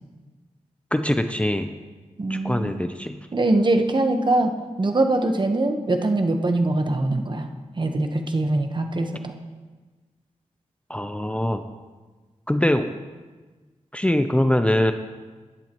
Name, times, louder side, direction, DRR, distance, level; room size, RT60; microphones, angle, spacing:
voice 1, 0.9-1.7 2.3-3.2 10.9-11.6 12.5-12.9 13.9-14.9, left 1 dB, 10° left, 8 dB, 0.6 m, -22 dB
voice 2, 2.2-2.8 3.3-4.5 4.8-7.5 7.8-9.3, right 2 dB, 40° right, 5 dB, 1.1 m, -22 dB
16.0 x 11.0 x 3.0 m, 1.3 s
wide cardioid pair, 75°, 13 cm